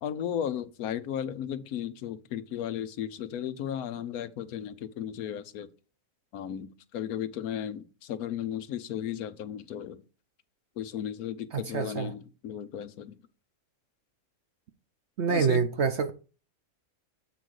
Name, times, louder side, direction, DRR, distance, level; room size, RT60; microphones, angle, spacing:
voice 1, 0.0-5.7 6.3-10.0 10.8-13.2 15.3-15.6, left 10 dB, 90° left, 1.2 m, -35 dB
voice 2, 11.5-12.1 15.2-16.1, right 5 dB, 60° right, 0.9 m, -26 dB
7.7 x 3.8 x 6.3 m
omnidirectional pair, 1.5 m